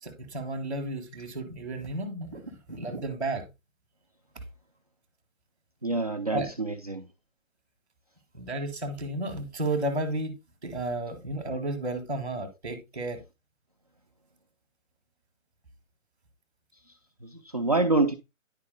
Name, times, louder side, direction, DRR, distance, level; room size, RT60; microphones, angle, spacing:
voice 1, 0.0-2.4 2.7-3.4 6.3-6.5 8.3-13.2, right 2 dB, ahead, 0.8 m, -32 dB
voice 2, 5.8-7.0 17.2-18.1, right 3 dB, 30° right, 0.5 m, -26 dB
10.5 x 4.8 x 3.7 m
figure-of-eight pair, 160°, 40 cm